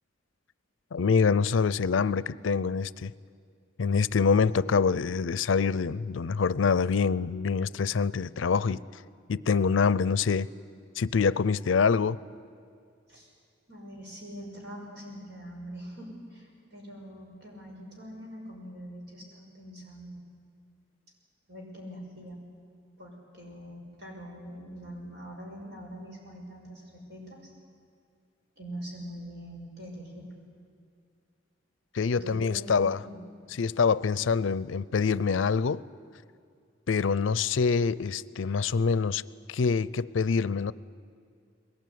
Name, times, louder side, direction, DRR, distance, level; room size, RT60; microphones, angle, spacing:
voice 1, 0.9-3.1 3.8-8.8 9.3-10.5 11.0-12.2 31.9-33.0 33.5-35.8 36.9-39.2 39.5-40.7, left 5 dB, 85° left, 20 dB, 0.5 m, -25 dB
voice 2, 13.7-20.2 21.5-22.4 23.0-27.5 28.6-30.3 32.1-33.2, equal, 55° right, -1 dB, 5.8 m, -43 dB
21.5 x 18.5 x 9.5 m, 2.3 s
head